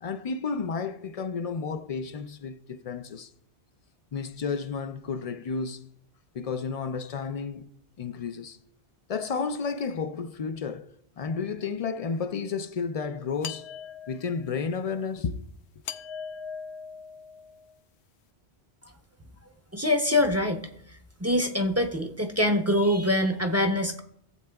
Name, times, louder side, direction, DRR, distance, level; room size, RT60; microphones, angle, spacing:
voice 1, 0.0-3.3 4.1-5.8 6.3-7.7 8.0-8.6 9.1-13.7 14.1-15.4, left 5 dB, 55° left, 0.4 m, -32 dB
sound 1, 13.4-14.5 15.8-17.7, left 7 dB, 85° left, 0.9 m, -40 dB
voice 2, 19.7-20.7 21.2-24.0, left 1 dB, 20° right, 0.6 m, -24 dB
15.0 x 7.7 x 2.3 m
omnidirectional pair, 1.1 m